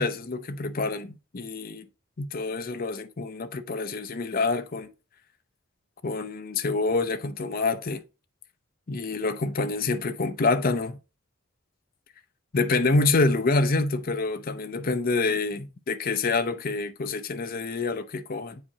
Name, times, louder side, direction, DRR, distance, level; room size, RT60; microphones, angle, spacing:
voice 1, 0.0-1.8 2.2-4.9 6.0-8.0 8.9-11.0 12.5-18.6, left 3 dB, 45° left, 0.6 m, -27 dB
8.4 x 4.9 x 2.8 m
head